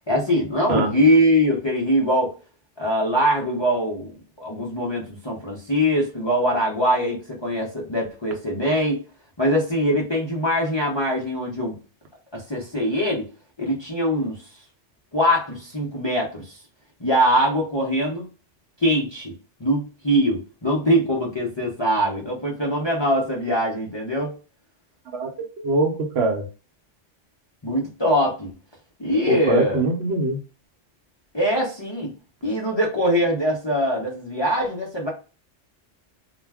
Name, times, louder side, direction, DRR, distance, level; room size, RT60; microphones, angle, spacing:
voice 1, 0.1-2.3 2.8-9.0 9.4-11.8 12.3-13.3 13.6-14.4 15.1-16.6 17.0-18.3 18.8-19.3 19.6-24.3 27.6-28.5 29.0-29.8 31.3-32.1 32.4-35.1, equal, 30° left, -3 dB, 0.5 m, -22 dB
voice 2, 25.6-26.4 29.3-30.4, right 3 dB, 65° right, 3 dB, 0.9 m, -22 dB
2.3 x 2.2 x 3.3 m, 0.34 s
omnidirectional pair, 1.2 m